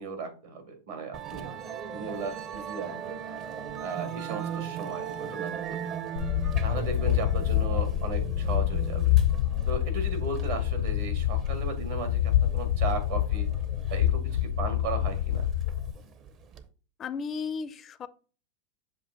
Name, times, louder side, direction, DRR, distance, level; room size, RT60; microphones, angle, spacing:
voice 1, 0.0-1.5 1.9-3.2 3.8-5.8 6.6-9.2 9.7-13.5 13.9-15.5, right 4 dB, 65° right, 6 dB, 2.0 m, -36 dB
Musical instrument, 1.1-16.6, right 8 dB, 35° right, 0.7 m, -39 dB
sound 1, 6.2-15.9, left 12 dB, 85° left, 0.6 m, -26 dB
voice 2, 17.0-18.1, left 5 dB, 25° left, 15 dB, 0.4 m, -34 dB
7.2 x 2.5 x 5.1 m, 0.37 s
supercardioid pair, 130°, 0 cm